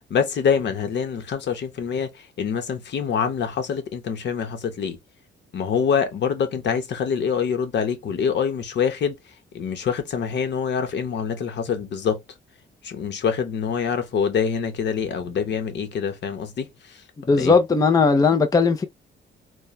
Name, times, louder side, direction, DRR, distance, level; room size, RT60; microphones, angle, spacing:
voice 1, 0.1-5.0 5.5-9.2 9.5-12.2 12.8-17.6, left 6 dB, 60° left, 0.9 m, -25 dB
voice 2, 17.3-18.8, left 4 dB, 20° left, 0.5 m, -18 dB
3.0 x 2.2 x 2.2 m
cardioid pair, 90°, 20 cm